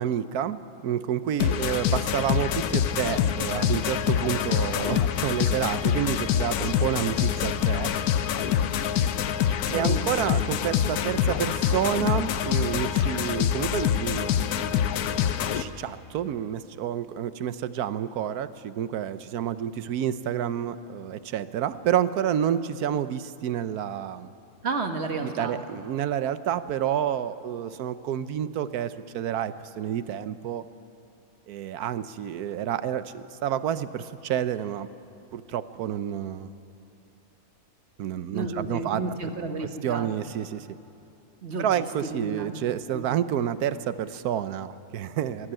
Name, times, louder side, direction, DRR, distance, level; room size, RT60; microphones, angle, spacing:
voice 1, 0.0-7.9 9.7-14.3 15.5-24.3 25.2-30.7 31.5-34.9 35.3-36.5 38.0-39.0 39.6-40.7 41.6-45.5, right 10 dB, 90° right, 14 dB, 1.3 m, -29 dB
sound 1, 1.4-15.6, left 9 dB, 85° left, 1.3 m, -25 dB
voice 2, 9.7-10.2 10.8-11.0 24.6-25.6 38.3-40.3 41.4-41.9 42.1-42.6 42.9-43.1, right 3 dB, 45° right, 6 dB, 1.7 m, -32 dB
21.5 x 16.5 x 8.9 m, 2.7 s
omnidirectional pair, 1.6 m